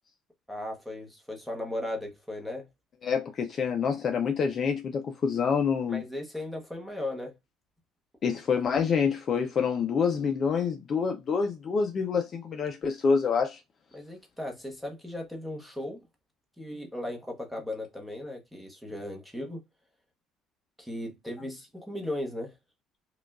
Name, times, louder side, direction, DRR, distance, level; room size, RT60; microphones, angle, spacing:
voice 1, 0.5-2.7 5.9-7.3 13.9-16.0 16.6-19.6 20.8-22.5, left 1 dB, ahead, 0.9 m, -37 dB
voice 2, 3.0-6.0 8.2-13.6, left 6 dB, 30° left, 0.4 m, -27 dB
4.9 x 2.3 x 2.3 m
cardioid pair, 165°, 0 cm